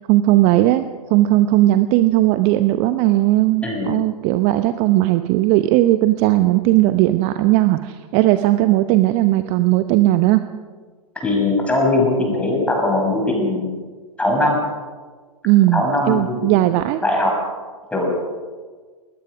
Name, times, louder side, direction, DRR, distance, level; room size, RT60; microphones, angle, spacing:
voice 1, 0.1-10.4 15.4-17.0, right 16 dB, 30° right, 10 dB, 0.8 m, -17 dB
voice 2, 11.2-13.7 14.2-14.6 15.7-16.7 17.0-17.4 17.9-18.1, left 2 dB, 5° left, 0 dB, 6.6 m, -20 dB
20.5 x 20.0 x 6.2 m, 1.4 s
figure-of-eight pair, 110°, 19 cm